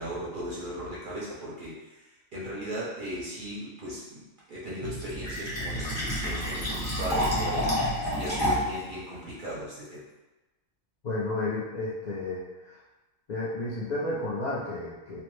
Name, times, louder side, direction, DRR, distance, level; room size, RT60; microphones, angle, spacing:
voice 1, 0.0-4.2 4.5-10.0, right 1 dB, 50° right, -7 dB, 0.7 m, -37 dB
Fill (with liquid), 4.8-8.8, equal, 25° left, 0.8 m, -29 dB
voice 2, 11.0-12.8 13.3-15.2, left 2 dB, 60° left, -7 dB, 0.4 m, -32 dB
2.4 x 2.1 x 3.1 m, 1.1 s
omnidirectional pair, 1.4 m